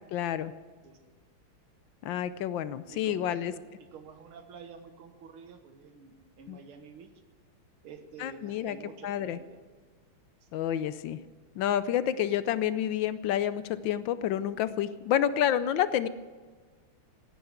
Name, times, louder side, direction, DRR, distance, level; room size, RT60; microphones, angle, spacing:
voice 1, 0.1-0.5 2.0-3.5 6.5-6.6 8.2-8.8 9.0-9.4 10.5-11.2 11.6-16.1, left 10 dB, 75° left, 14 dB, 1.2 m, -29 dB
voice 2, 2.9-7.1 7.8-9.6 10.4-10.7, right 6 dB, 80° right, 7 dB, 2.1 m, -49 dB
16.5 x 9.4 x 8.0 m, 1.5 s
omnidirectional pair, 2.3 m